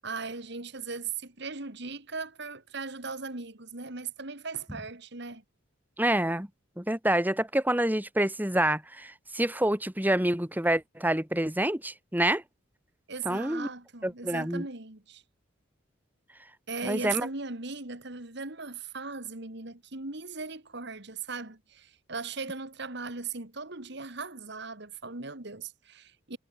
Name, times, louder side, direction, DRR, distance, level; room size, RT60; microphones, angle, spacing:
voice 1, 0.0-5.4 13.1-15.2 16.7-26.4, right 4 dB, 60° right, 2.6 m, -38 dB
voice 2, 6.0-6.5 6.8-12.4 13.2-13.7 14.0-14.7 16.8-17.3, right 1 dB, 10° right, 2.3 m, -27 dB
head